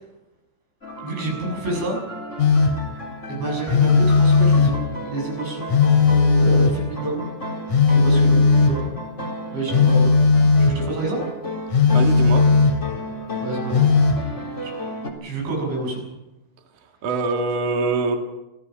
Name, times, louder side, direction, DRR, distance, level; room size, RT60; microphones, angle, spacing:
sound 1, 0.8-15.1, equal, 15° left, 3.2 m, -33 dB
voice 1, 1.0-2.0 3.3-6.1 6.4-7.2 7.9-8.8 9.5-10.1 10.6-11.3 13.4-14.7 15.2-16.0, right 2 dB, 70° right, 0 dB, 9.4 m, -29 dB
Telephone, 2.4-2.9 3.7-4.9 5.7-6.9 7.7-8.9 9.7-10.8 11.7-12.9 13.7-14.3, left 4 dB, 40° left, 4.3 m, -16 dB
voice 2, 11.9-12.5 17.0-18.2, right 3 dB, 50° right, 3 dB, 2.8 m, -23 dB
27.5 x 18.0 x 5.9 m, 0.99 s
omnidirectional pair, 5.5 m